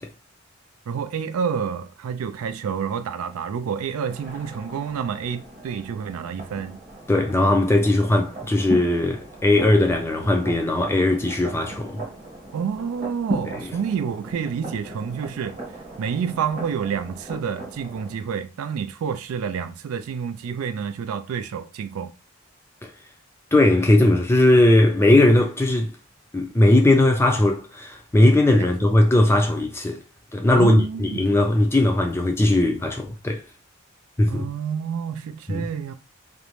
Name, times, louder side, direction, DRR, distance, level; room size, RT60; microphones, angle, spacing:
voice 1, 0.9-6.8 12.5-15.6 16.0-22.1 28.6-28.7 30.5-31.3 34.3-35.9, right 7 dB, 80° right, 0.3 m, -29 dB
sound 1, 4.1-18.1, equal, 35° right, 1.0 m, -38 dB
voice 2, 7.1-12.0 13.6-13.7 22.8-22.9 23.5-25.9 26.3-30.0 30.3-33.4 34.2-34.5 35.5-35.7, left 1 dB, 10° left, 0.3 m, -18 dB
2.5 x 2.1 x 3.1 m
head